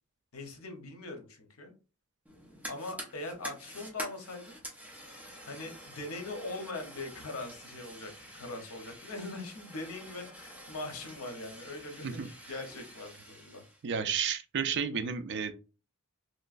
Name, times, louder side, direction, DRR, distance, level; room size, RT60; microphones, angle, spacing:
voice 1, 0.3-1.7 2.6-4.6 5.4-12.2 12.5-13.6, left 2 dB, 70° left, 5 dB, 0.8 m, -41 dB
Fire, 2.2-13.8, equal, 5° right, 0.9 m, -47 dB
voice 2, 13.8-15.5, right 6 dB, 55° right, 10 dB, 0.4 m, -32 dB
3.1 x 3.0 x 2.4 m, 0.34 s
head